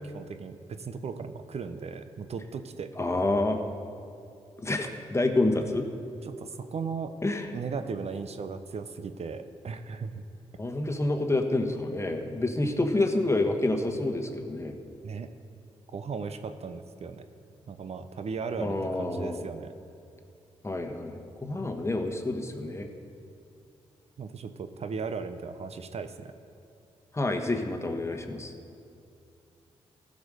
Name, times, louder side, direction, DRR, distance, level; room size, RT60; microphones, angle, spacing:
voice 1, 0.0-2.9 6.2-7.2 7.5-10.2 15.0-15.3 15.9-17.3 17.7-19.7 24.2-26.3, right 5 dB, 55° right, 9 dB, 0.7 m, -37 dB
voice 2, 3.0-3.6 4.6-5.9 7.2-7.5 10.6-14.7 18.6-19.4 20.6-22.9 27.1-28.5, left 2 dB, 20° left, 5 dB, 1.2 m, -28 dB
15.0 x 5.2 x 6.4 m, 2.5 s
supercardioid pair, 50°, 12 cm